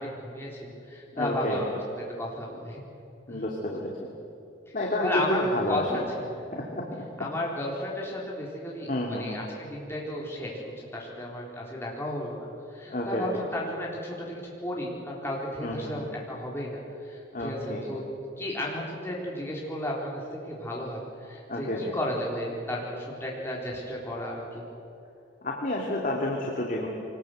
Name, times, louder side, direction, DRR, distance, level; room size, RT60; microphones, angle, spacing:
voice 1, 0.0-1.7 2.2-2.8 3.3-3.4 5.0-6.4 7.2-18.0 18.4-20.2 20.5-24.6, left 1 dB, 10° left, -3 dB, 4.1 m, -34 dB
voice 2, 1.1-1.6 3.3-3.9 4.7-5.9 6.5-6.8 8.9-9.4 12.9-13.3 15.6-16.0 17.3-17.8 21.5-21.8 25.4-26.9, left 1 dB, 40° left, -1 dB, 2.5 m, -29 dB
24.5 x 20.0 x 8.0 m, 2.8 s
head